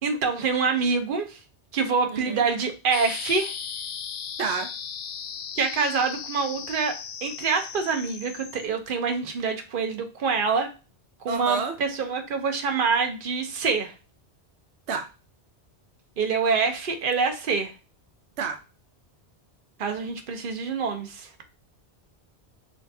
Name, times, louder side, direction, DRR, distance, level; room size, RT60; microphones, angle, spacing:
voice 1, 0.0-1.4 1.7-3.5 5.6-10.7 11.2-13.9 16.2-17.7 19.8-21.3, right 5 dB, 55° right, 0.9 m, -26 dB
voice 2, 2.1-2.4 4.4-4.7 11.3-11.8 14.9-15.1 18.4-18.6, right 5 dB, 90° right, 0.9 m, -29 dB
sound 1, 2.9-8.7, left 7 dB, 65° left, 0.7 m, -36 dB
6.2 x 2.4 x 2.7 m
omnidirectional pair, 1.1 m